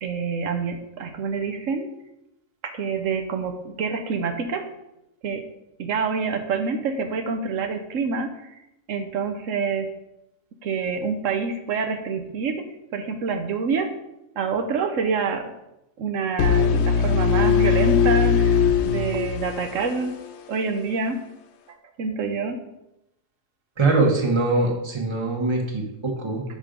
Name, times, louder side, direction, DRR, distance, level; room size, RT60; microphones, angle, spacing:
voice 1, 0.0-1.9 2.6-4.6 5.2-5.4 5.8-8.6 8.9-9.9 10.6-12.6 12.9-13.9 14.4-15.5 16.0-20.1 20.5-21.2 22.0-22.6, right 5 dB, 85° right, 6 dB, 1.2 m, -27 dB
sound 1, 16.4-20.3, left 6 dB, 65° left, 0.8 m, -20 dB
voice 2, 23.8-26.4, right 3 dB, 25° right, 1 dB, 1.2 m, -22 dB
6.3 x 5.5 x 5.1 m, 0.89 s
omnidirectional pair, 1.3 m